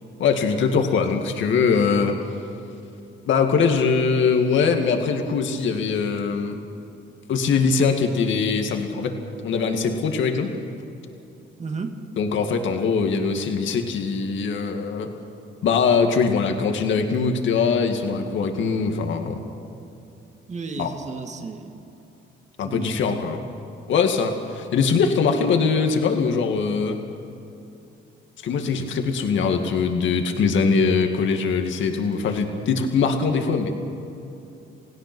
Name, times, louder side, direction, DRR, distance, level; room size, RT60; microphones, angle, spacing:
voice 1, 0.2-2.2 3.3-6.6 7.3-9.2 9.4-10.5 12.2-15.1 15.6-19.4 20.8-20.9 22.6-23.4 23.9-27.0 28.4-33.7, left 5 dB, 75° left, 4 dB, 2.1 m, -22 dB
voice 2, 11.6-12.0 20.5-21.8 22.6-23.3, right 4 dB, 35° right, 5 dB, 2.1 m, -34 dB
29.0 x 17.0 x 6.2 m, 2.7 s
cardioid pair, 90°, 20 cm